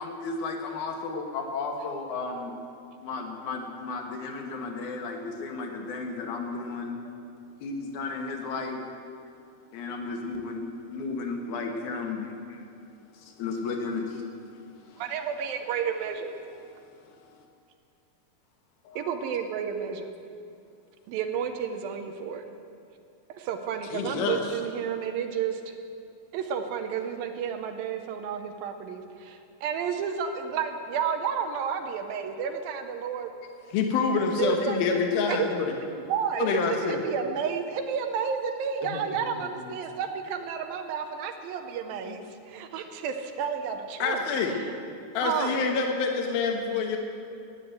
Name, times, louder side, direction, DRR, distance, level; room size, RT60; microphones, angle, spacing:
voice 1, 0.0-2.6 3.0-7.0 7.6-8.8 9.7-10.7 10.9-12.7 13.1-15.0 16.6-17.5, left 4 dB, 60° left, 3 dB, 2.5 m, -34 dB
voice 2, 15.0-16.3 19.0-20.1 21.1-22.4 23.3-25.8 26.3-33.3 34.4-35.0 35.3-35.5 36.1-44.6 45.2-45.6, right 7 dB, 80° right, 6 dB, 2.5 m, -31 dB
voice 3, 18.9-19.2 23.9-24.4 33.7-35.7 36.4-37.0 38.8-39.0 44.0-44.6 45.1-47.0, left 5 dB, 80° left, 3 dB, 3.0 m, -27 dB
13.5 x 9.7 x 8.1 m, 2.5 s
omnidirectional pair, 4.2 m